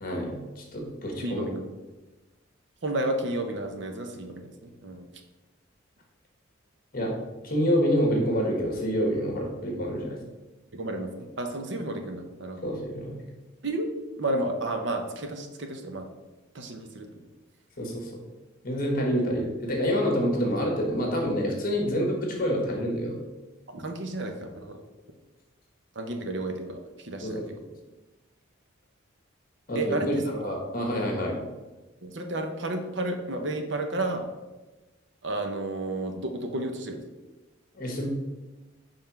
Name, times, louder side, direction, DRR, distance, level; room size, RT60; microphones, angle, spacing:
voice 1, 0.0-1.5 6.9-7.1 7.4-10.2 12.6-13.2 17.8-18.1 18.6-23.2 27.2-27.4 29.7-29.9 30.3-31.4 37.7-38.1, equal, 45° left, 1 dB, 1.4 m, -27 dB
voice 2, 1.2-1.6 2.8-5.1 10.7-12.8 13.6-13.9 14.2-16.1 16.5-17.1 23.7-24.8 25.9-27.4 29.7-30.5 32.0-34.2 35.2-37.0, right 2 dB, 60° right, 5 dB, 0.8 m, -32 dB
5.5 x 3.6 x 5.8 m, 1.2 s
head